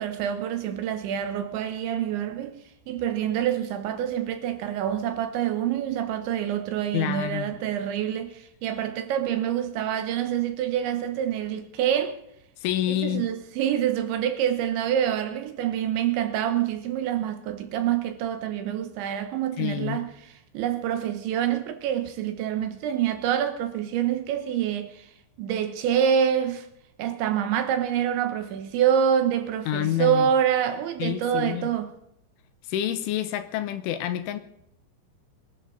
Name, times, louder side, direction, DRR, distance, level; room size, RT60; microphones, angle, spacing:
voice 1, 0.0-2.6 2.9-12.2 12.9-20.1 20.5-25.0 25.4-26.7 27.0-31.9, right 9 dB, 75° right, 3.3 m, -26 dB
voice 2, 6.9-7.6 12.6-13.3 19.6-20.0 29.7-30.3 31.0-31.7 32.7-34.4, left 12 dB, 80° left, 3.3 m, -28 dB
23.5 x 12.0 x 4.0 m
omnidirectional pair, 5.8 m